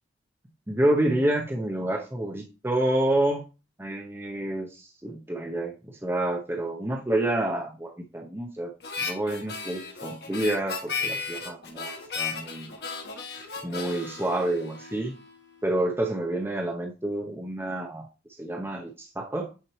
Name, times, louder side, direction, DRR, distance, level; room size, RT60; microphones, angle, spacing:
voice 1, 0.7-3.4 3.8-8.7 9.0-12.7 13.6-15.1 15.6-18.1 18.4-19.5, right 1 dB, 15° right, 1 dB, 0.7 m, -28 dB
Harmonica, 8.8-15.3, left 5 dB, 60° left, 1.5 m, -35 dB
8.9 x 4.3 x 3.1 m, 0.32 s
head